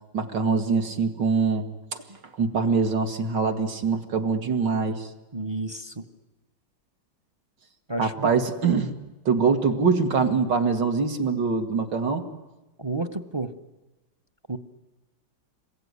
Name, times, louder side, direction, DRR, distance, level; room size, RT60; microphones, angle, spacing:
voice 1, 0.1-1.7 2.4-5.1 8.0-9.0 9.3-12.3, right 5 dB, 65° right, 5 dB, 2.6 m, -23 dB
voice 2, 5.3-6.0 7.9-8.3 12.8-13.5 14.5-14.6, right 2 dB, 25° right, 10 dB, 0.6 m, -31 dB
27.5 x 22.0 x 9.7 m, 1.1 s
omnidirectional pair, 2.1 m